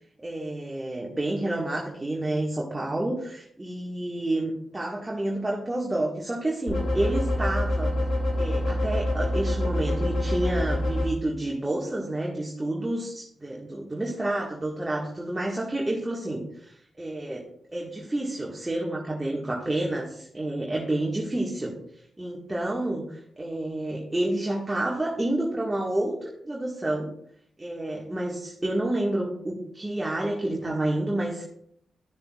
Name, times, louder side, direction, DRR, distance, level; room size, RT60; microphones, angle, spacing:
voice 1, 0.2-7.9 8.4-16.4 17.0-17.4 17.7-21.7 22.2-27.1 27.6-31.4, right 1 dB, 20° right, -2 dB, 1.6 m, -29 dB
sound 1, 6.7-11.1, left 1 dB, 65° left, 2.7 m, -26 dB
12.0 x 6.7 x 2.4 m, 0.70 s
supercardioid pair, 45°, 0 cm